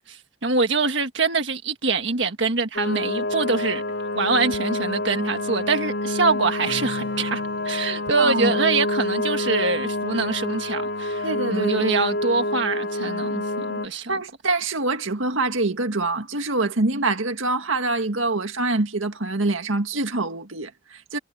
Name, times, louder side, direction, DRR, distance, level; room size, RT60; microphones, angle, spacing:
voice 1, 0.0-3.8 4.1-14.2, right 4 dB, 65° right, 1.6 m, -24 dB
sound 1, 2.7-13.9, left 2 dB, 65° left, 3.8 m, -27 dB
Acoustic guitar / Strum, 6.6-9.5, left 1 dB, 85° left, 5.6 m, -43 dB
voice 2, 8.2-8.5 11.2-11.9 14.1-21.2, right 2 dB, 85° right, 1.9 m, -25 dB
head